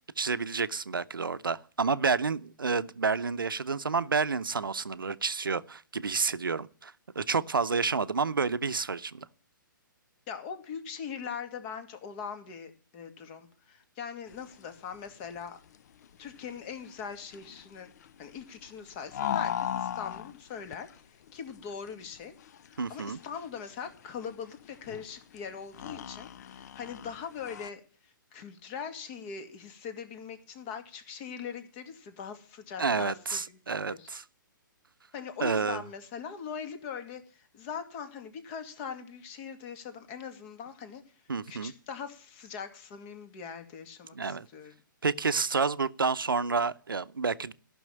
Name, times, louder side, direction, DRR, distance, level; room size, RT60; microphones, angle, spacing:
voice 1, 0.2-9.3 22.8-23.2 32.8-34.2 35.4-35.8 41.3-41.7 44.1-44.5 45.0-47.5, right 4 dB, 85° right, 0.7 m, -29 dB
voice 2, 10.3-15.6 16.2-17.9 18.2-22.3 22.6-34.1 35.1-41.0 41.5-44.7, left 6 dB, 35° left, 2.3 m, -41 dB
sound 1, 14.3-27.7, left 9 dB, 50° left, 0.6 m, -39 dB
13.5 x 6.3 x 8.9 m
hypercardioid pair, 130°, 11 cm